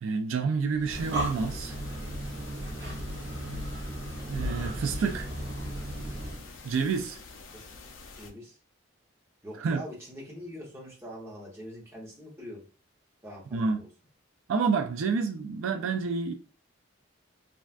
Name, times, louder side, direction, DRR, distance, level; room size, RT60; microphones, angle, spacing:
voice 1, 0.0-1.8 4.3-5.3 6.6-7.2 9.6-9.8 13.5-13.8 14.5-16.3, right 5 dB, 80° right, 0.4 m, -28 dB
Breathing, 0.7-6.5, equal, 65° right, 0.8 m, -35 dB
sound 1, 0.9-8.3, left 4 dB, 75° left, 0.5 m, -48 dB
voice 2, 8.1-8.6 9.4-12.6 13.2-13.9, equal, 10° right, 0.9 m, -43 dB
3.3 x 2.4 x 2.4 m
head